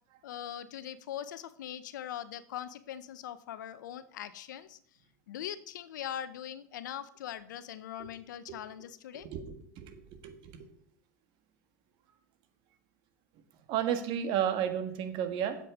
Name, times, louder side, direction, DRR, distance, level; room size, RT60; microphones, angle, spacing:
voice 1, 0.2-4.8 5.3-9.3, left 10 dB, 80° left, 14 dB, 0.7 m, -41 dB
voice 2, 9.1-10.7 13.7-15.6, right 9 dB, 55° right, 8 dB, 1.5 m, -33 dB
7.7 x 7.6 x 4.8 m, 0.64 s
hypercardioid pair, 95°, 10 cm